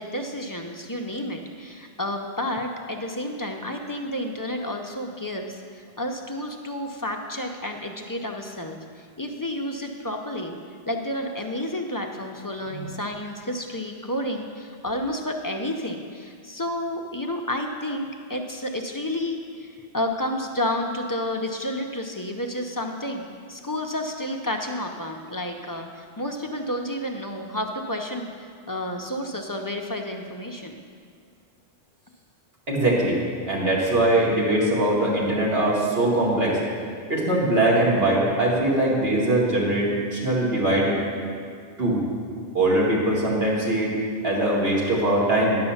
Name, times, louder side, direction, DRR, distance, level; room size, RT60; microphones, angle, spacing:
voice 1, 0.0-10.6 10.9-23.2 23.5-30.7, left 1 dB, 25° left, 2 dB, 0.4 m, -30 dB
voice 2, 32.7-33.2 33.5-36.6 37.1-41.0 41.8-42.0 42.5-43.9 44.2-45.6, right 1 dB, 60° right, -4 dB, 2.2 m, -21 dB
10.5 x 5.4 x 7.1 m, 2.2 s
omnidirectional pair, 1.1 m